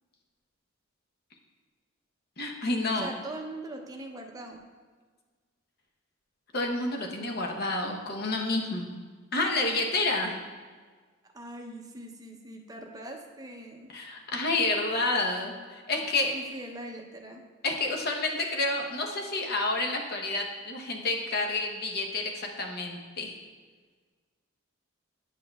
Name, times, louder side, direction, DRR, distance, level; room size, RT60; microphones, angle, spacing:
voice 1, 2.4-3.1 6.5-9.0 9.3-10.3 13.9-16.3 17.6-23.3, left 2 dB, 50° left, 2 dB, 0.8 m, -29 dB
voice 2, 3.0-4.6 11.3-13.9 16.3-17.4, right 1 dB, 20° right, 2 dB, 0.6 m, -41 dB
10.0 x 6.0 x 2.3 m, 1.5 s
head